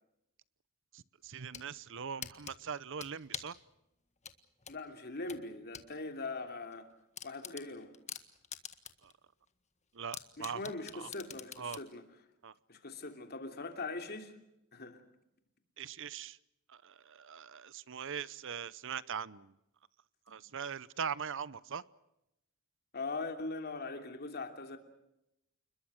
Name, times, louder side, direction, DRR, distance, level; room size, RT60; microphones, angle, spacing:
sound 1, 1.2-1.7 2.2-3.6 4.2-5.9 6.3-6.4 6.7-6.8 7.2-9.1 9.5-9.6 10.1-11.9, left 8 dB, 35° left, 1.6 m, -45 dB
voice 1, 1.2-3.5 9.9-10.6 11.0-11.1 11.6-11.8 12.4-12.5 15.8-16.4 16.8-19.5 20.3-21.8, right 7 dB, 60° right, 0.8 m, -41 dB
voice 2, 4.7-6.9 7.2-7.9 10.4-12.0 12.7-14.4 14.7-15.0 22.9-24.8, left 3 dB, 50° left, 3.0 m, -41 dB
29.0 x 21.5 x 6.4 m
head